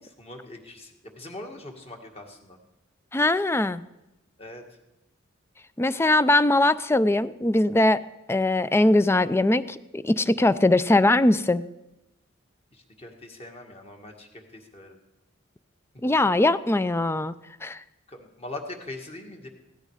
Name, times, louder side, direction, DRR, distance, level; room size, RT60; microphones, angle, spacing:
voice 1, 0.2-2.6 4.4-4.6 10.9-11.0 12.7-15.0 15.9-16.0 18.1-19.5, left 2 dB, 30° left, 2 dB, 1.9 m, -41 dB
voice 2, 3.1-3.8 5.8-8.0 8.3-11.6 16.0-17.3 17.6-17.8, left 2 dB, 15° left, 15 dB, 0.4 m, -21 dB
16.5 x 13.0 x 4.9 m, 0.95 s
head